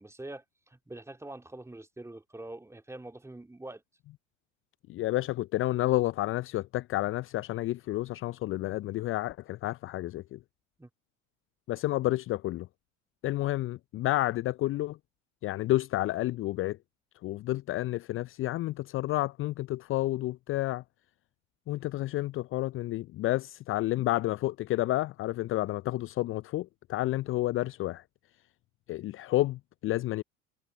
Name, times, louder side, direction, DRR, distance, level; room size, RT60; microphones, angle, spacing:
voice 1, 0.0-3.8 5.2-5.3 10.8-10.9, right 2 dB, 5° right, 3.3 m, -44 dB
voice 2, 4.9-10.4 11.7-12.7 13.2-15.0 15.4-16.8 17.2-20.8 21.7-28.0 28.9-30.2, left 16 dB, 30° left, 0.7 m, -30 dB
figure-of-eight pair, 70°, 39 cm